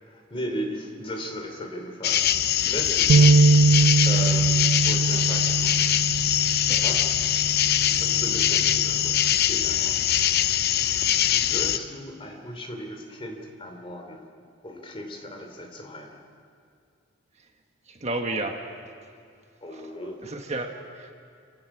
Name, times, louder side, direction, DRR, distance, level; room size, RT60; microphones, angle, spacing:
voice 1, 0.0-2.3 2.6-3.4 4.0-6.2 6.7-7.2 7.9-10.0 10.3-10.4 11.3-14.3 14.6-16.2 19.6-20.3, equal, 30° left, 3 dB, 3.1 m, -36 dB
sound 1, 2.0-11.8, left 11 dB, 55° left, 0.6 m, -23 dB
sound 2, 3.1-9.3, right 3 dB, 75° right, 0.8 m, -22 dB
voice 2, 17.9-18.6 20.2-21.1, right 2 dB, 35° right, 4 dB, 1.4 m, -31 dB
29.5 x 17.0 x 6.1 m, 2.4 s
head